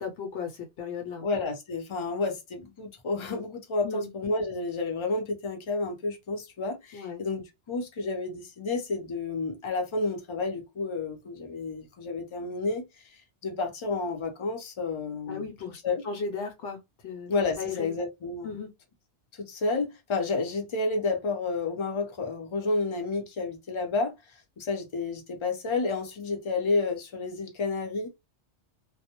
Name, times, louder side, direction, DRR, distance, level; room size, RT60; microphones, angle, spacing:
voice 1, 0.0-1.3 3.8-4.1 6.9-7.2 15.3-15.8 16.0-16.8 17.0-17.9 18.4-18.7, left 5 dB, 80° left, 0.9 m, -36 dB
voice 2, 1.2-12.9 13.4-15.5 15.8-16.1 17.3-18.6 19.5-24.1 24.6-28.1, left 3 dB, 40° left, 0.5 m, -30 dB
2.1 x 2.0 x 2.8 m
omnidirectional pair, 1.2 m